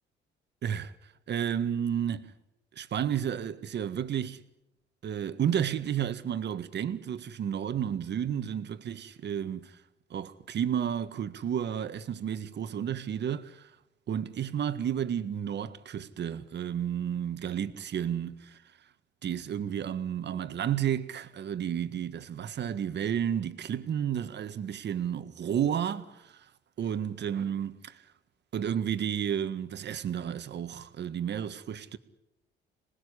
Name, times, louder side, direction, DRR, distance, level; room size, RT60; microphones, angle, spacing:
voice 1, 0.6-0.9 1.3-2.3 2.8-4.4 5.0-9.8 10.1-13.7 14.1-18.6 19.2-26.5 26.8-28.0 28.5-32.0, right 9 dB, 60° right, 1.8 m, -32 dB
27.0 x 20.0 x 10.0 m
cardioid pair, 90°, 20 cm